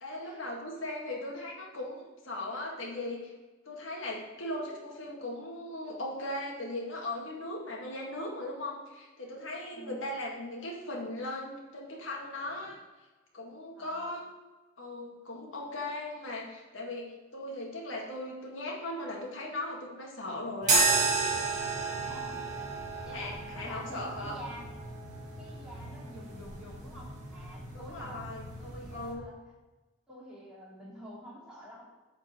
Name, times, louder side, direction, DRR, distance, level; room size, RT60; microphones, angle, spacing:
voice 1, 0.0-2.0 2.2-3.3 3.7-12.8 13.3-14.3 14.8-20.9 23.1-24.4 27.7-28.6 28.9-29.2, left 1 dB, 75° left, -2 dB, 1.9 m, -38 dB
voice 2, 13.7-14.2 21.8-22.7 23.0-24.7 25.4-28.2 28.6-29.4 30.1-31.9, equal, 5° right, -7 dB, 2.7 m, -48 dB
sound 1, 20.6-29.1, right 3 dB, 40° right, 2.2 m, -32 dB
8.7 x 4.6 x 7.1 m, 1.2 s
head